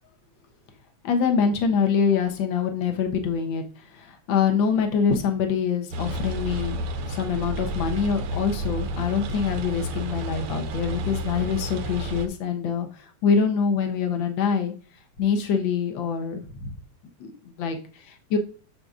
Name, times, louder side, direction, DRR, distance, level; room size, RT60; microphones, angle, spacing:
voice 1, 1.0-14.7 15.2-16.7 17.2-17.8 18.3-18.4, left 6 dB, 55° left, 4 dB, 1.4 m, -25 dB
sound 1, 5.9-12.3, right 1 dB, 65° right, 1.5 m, -31 dB
8.0 x 7.0 x 2.5 m, 0.39 s
omnidirectional pair, 3.3 m